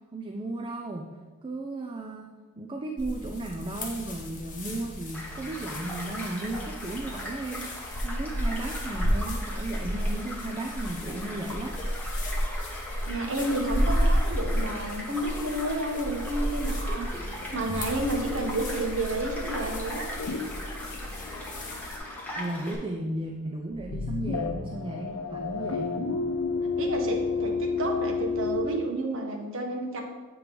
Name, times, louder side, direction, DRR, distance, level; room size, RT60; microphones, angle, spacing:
voice 1, 0.1-2.3 2.6-11.8 22.4-26.1, right 2 dB, 25° right, 2 dB, 0.4 m, -35 dB
sound 1, 3.0-22.0, equal, 35° left, 1.0 m, -32 dB
Child speech kid speaking / Stream / Car passing by, 5.1-22.7, left 1 dB, 10° left, 1.2 m, -40 dB
voice 2, 13.1-20.0 26.8-30.0, right 2 dB, 65° right, 2 dB, 1.0 m, -31 dB
sound 2, 17.1-22.5 22.8-23.3 23.7-28.7, left 4 dB, 90° left, 0.6 m, -32 dB
8.2 x 3.1 x 5.1 m, 1.3 s
head